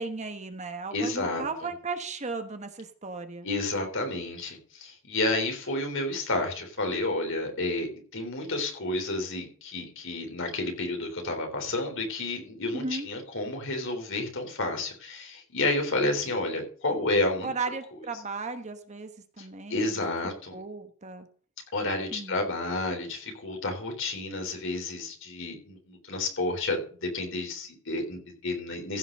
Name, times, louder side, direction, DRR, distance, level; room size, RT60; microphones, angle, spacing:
voice 1, 0.0-3.5 12.7-13.1 17.4-19.1 19.4-20.0 20.5-21.3 22.1-22.4, right 3 dB, 35° right, 8 dB, 1.2 m, -35 dB
voice 2, 0.9-1.7 3.4-17.5 19.4-20.6 21.7-29.0, left 2 dB, 60° left, 4 dB, 3.6 m, -30 dB
15.5 x 6.0 x 5.4 m, 0.43 s
head